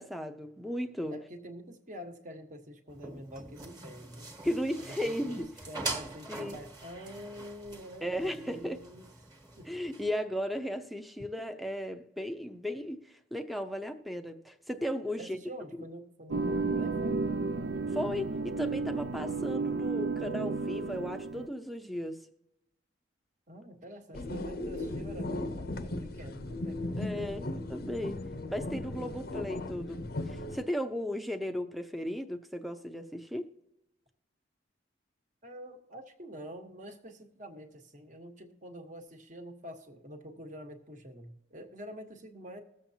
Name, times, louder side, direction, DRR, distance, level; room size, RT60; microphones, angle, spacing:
voice 1, 0.0-1.1 4.4-5.5 6.3-6.6 8.0-8.8 9.7-13.0 13.3-15.4 15.7-15.8 17.9-22.3 24.2-24.3 27.0-28.2 28.5-30.0 30.5-33.5, equal, ahead, 0.6 m, -35 dB
voice 2, 1.1-4.3 4.9-9.1 9.5-9.7 15.2-17.2 23.5-27.7 35.4-42.6, equal, 40° right, 1.2 m, -46 dB
sound 1, 2.9-10.1, right 2 dB, 20° right, 1.4 m, -43 dB
sound 2, 16.3-21.5, right 3 dB, 65° right, 0.5 m, -32 dB
sound 3, 24.1-30.6, left 2 dB, 55° left, 0.7 m, -37 dB
20.5 x 7.5 x 2.8 m
head